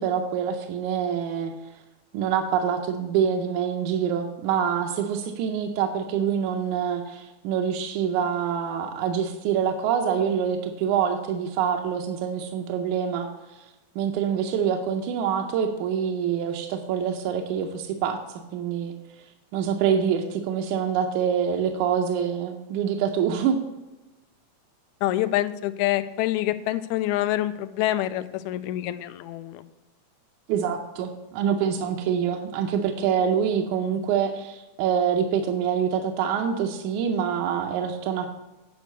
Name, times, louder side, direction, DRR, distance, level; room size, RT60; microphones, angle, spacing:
voice 1, 0.0-1.5 2.1-13.3 14.0-18.2 18.5-18.9 19.5-23.6 30.5-38.3, right 8 dB, 85° right, 3 dB, 2.1 m, -25 dB
voice 2, 25.0-29.6, left 14 dB, 85° left, 12 dB, 1.9 m, -26 dB
9.4 x 5.2 x 6.7 m, 1.1 s
omnidirectional pair, 3.4 m